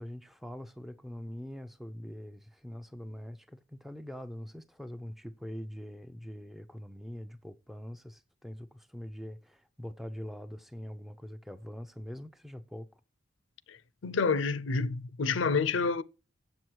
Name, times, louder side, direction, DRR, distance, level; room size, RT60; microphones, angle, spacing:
voice 1, 0.0-13.0, equal, ahead, 0.5 m, -43 dB
voice 2, 14.0-16.0, left 4 dB, 75° left, 0.6 m, -28 dB
7.7 x 7.6 x 4.6 m
head